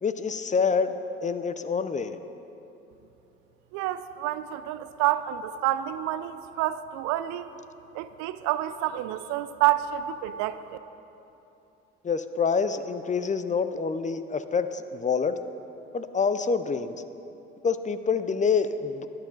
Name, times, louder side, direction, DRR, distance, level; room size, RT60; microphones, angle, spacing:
voice 1, 0.0-0.9 1.2-2.2 12.0-15.4 15.9-17.0 17.6-19.1, left 5 dB, 25° left, 11 dB, 0.5 m, -26 dB
voice 2, 3.7-7.5 7.9-10.8, right 13 dB, 75° right, 13 dB, 0.4 m, -28 dB
11.5 x 7.5 x 3.9 m, 2.9 s
hypercardioid pair, 60°, 29 cm